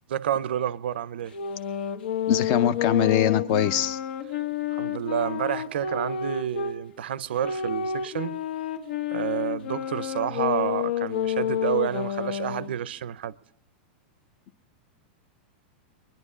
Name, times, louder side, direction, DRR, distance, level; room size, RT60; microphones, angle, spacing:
voice 1, 0.1-1.4 4.7-8.4 9.1-13.4, right 10 dB, 90° right, 0.6 m, -29 dB
sound 1, 1.3-6.8 7.4-12.7, left 8 dB, 75° left, 1.3 m, -29 dB
voice 2, 2.3-4.0, left 9 dB, 30° left, 0.5 m, -22 dB
23.5 x 10.5 x 4.9 m
supercardioid pair, 180°, 6 cm